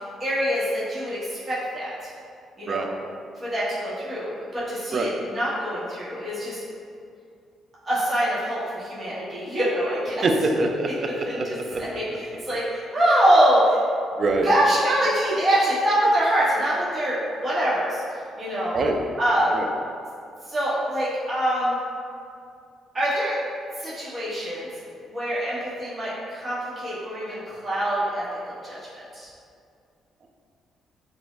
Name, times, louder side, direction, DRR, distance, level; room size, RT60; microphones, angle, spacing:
voice 1, 0.0-2.1 2.6-2.9 3.4-6.6 7.8-10.2 10.6-10.7 11.3-13.8 14.4-18.0 18.4-18.8 19.2-19.6 20.5-21.8 22.9-23.3 23.8-24.7 25.0-28.9 29.1-29.3, right 1 dB, 30° right, -10 dB, 1.1 m, -24 dB
voice 2, 10.2-11.5 11.7-11.8 14.2-14.5 18.7-19.0 19.5-19.7, right 3 dB, 45° right, 3 dB, 0.3 m, -24 dB
3.5 x 2.0 x 3.1 m, 2.4 s
cardioid pair, 90°, 0 cm